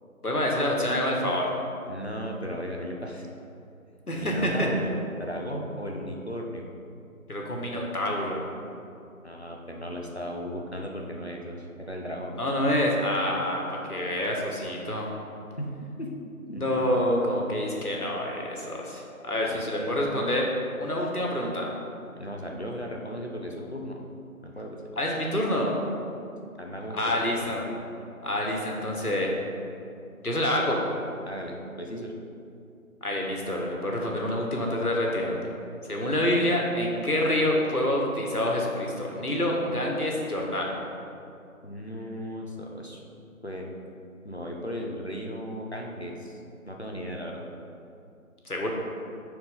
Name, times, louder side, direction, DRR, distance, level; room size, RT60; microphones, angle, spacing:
voice 1, 0.2-1.5 4.1-4.7 7.3-8.4 12.4-15.1 16.5-20.5 20.8-21.7 25.0-25.7 26.9-27.7 28.2-29.3 30.2-30.8 33.0-35.5 35.9-40.7 48.5-48.7, left 1 dB, 85° left, -1 dB, 1.8 m, -27 dB
voice 2, 1.8-3.3 3.9-6.7 9.2-12.4 15.6-16.1 16.5-16.6 19.4-20.1 22.1-24.0 24.4-24.8 26.6-27.7 31.2-32.1 41.6-43.0 43.4-43.7 44.2-46.4 46.7-47.4, equal, 45° left, 0 dB, 0.8 m, -36 dB
10.0 x 4.5 x 3.7 m, 2.5 s
figure-of-eight pair, 180°, 44 cm